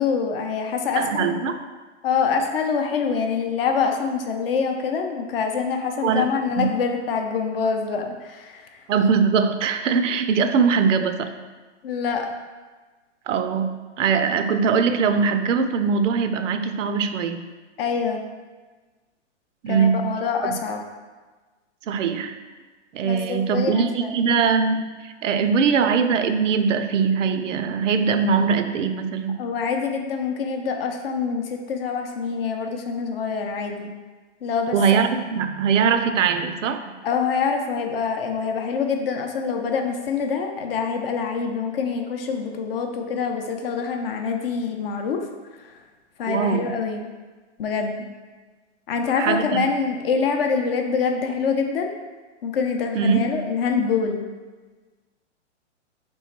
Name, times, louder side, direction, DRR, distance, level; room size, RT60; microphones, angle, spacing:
voice 1, 0.0-1.4 2.0-8.8 11.8-12.3 17.8-18.3 19.7-20.8 23.0-24.1 29.4-33.9 34.4-35.1 37.0-45.2 45.6-45.8 46.2-47.1 47.6-48.1 48.9-51.9 52.4-54.3, left 5 dB, 50° left, 4 dB, 0.6 m, -25 dB
voice 2, 1.0-1.6 6.0-6.3 6.6-6.7 8.9-11.3 13.3-17.4 19.6-20.1 20.4-20.5 21.9-22.4 22.9-29.4 34.7-36.9 46.3-46.7 49.2-49.6 52.9-53.2, right 6 dB, 85° right, 9 dB, 0.5 m, -21 dB
3.2 x 3.1 x 4.3 m, 1.3 s
hypercardioid pair, 140°, 37 cm